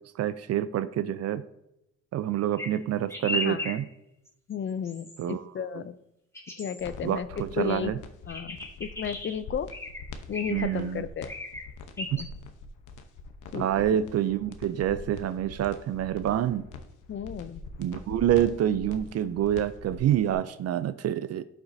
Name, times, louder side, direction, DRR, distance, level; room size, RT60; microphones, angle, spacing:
voice 1, 0.2-1.4 2.1-3.9 5.2-5.4 7.0-8.0 10.5-11.0 12.1-12.2 13.5-16.6 17.8-21.4, right 11 dB, 55° right, 14 dB, 0.4 m, -27 dB
sound 1, 2.6-2.7 3.1-3.8 4.3-4.5 4.8-5.2 6.3-6.8 8.3-9.3 9.7-10.0 10.3-10.9 11.3-11.6 12.0-12.2, left 1 dB, 10° left, 1.8 m, -35 dB
voice 2, 4.5-6.0 6.6-7.9 8.3-9.7 10.3-11.3 12.0-12.3 13.5-13.9 17.1-17.6, left 8 dB, 40° left, 14 dB, 0.5 m, -33 dB
sound 2, 6.8-20.3, left 3 dB, 80° left, 0.9 m, -43 dB
11.0 x 5.9 x 2.7 m, 0.85 s
cardioid pair, 90°, 30 cm